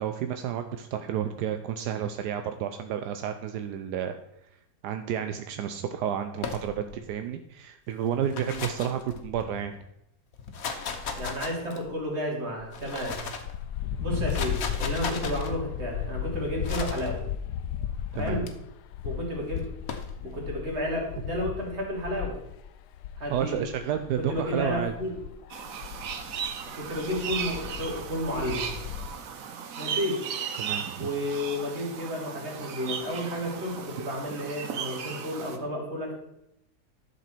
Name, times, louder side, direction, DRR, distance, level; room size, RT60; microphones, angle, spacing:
voice 1, 0.0-4.1 4.8-9.7 18.1-18.5 23.3-24.9 30.6-31.1, right 9 dB, 85° right, 8 dB, 1.2 m, -31 dB
sound 1, 6.4-7.0 8.1-9.6 10.3-12.0 12.6-13.5 14.1-15.5 16.6-17.1 18.1-18.5 19.5-20.1, left 5 dB, 60° left, 1.4 m, -36 dB
voice 2, 11.2-13.2 14.0-17.3 18.1-18.5 19.0-19.7 20.2-22.4 23.2-23.6 24.2-25.1 26.7-28.7 29.8-30.2 31.0-36.1, equal, 40° right, -2 dB, 2.9 m, -32 dB
sound 2, 13.4-29.1, left 10 dB, 80° left, 1.1 m, -36 dB
sound 3, 25.5-35.6, right 7 dB, 60° right, 1.2 m, -36 dB
11.5 x 6.9 x 4.4 m, 0.81 s
omnidirectional pair, 1.7 m